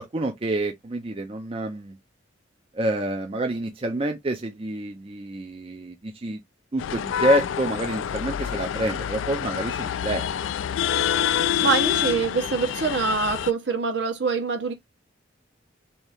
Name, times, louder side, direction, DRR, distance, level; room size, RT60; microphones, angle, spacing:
voice 1, 0.0-2.0 2.7-6.4 6.7-10.2, right 1 dB, 30° right, 0.5 m, -27 dB
sound 1, 6.8-13.5, left 9 dB, 85° left, 0.3 m, -27 dB
voice 2, 11.6-14.7, right 5 dB, 65° right, 1.0 m, -24 dB
3.6 x 2.8 x 3.4 m
head